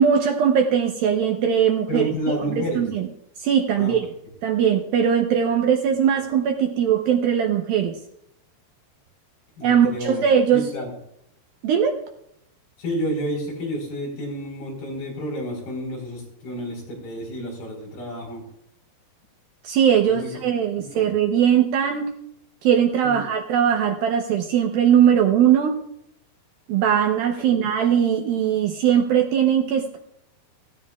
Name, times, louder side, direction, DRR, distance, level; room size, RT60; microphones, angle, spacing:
voice 1, 0.0-2.1 2.5-3.1 3.4-4.1 4.4-8.0 9.6-10.7 11.6-12.0 19.6-22.1 22.6-25.8 26.7-30.0, right 8 dB, 75° right, 3 dB, 2.3 m, -20 dB
voice 2, 1.9-2.9 3.8-4.0 9.6-10.2 10.5-10.9 12.8-18.4 20.1-20.5 20.9-21.0 23.0-23.3 27.4-27.6, equal, 60° left, -1 dB, 5.9 m, -30 dB
17.5 x 16.0 x 2.4 m, 0.76 s
omnidirectional pair, 5.0 m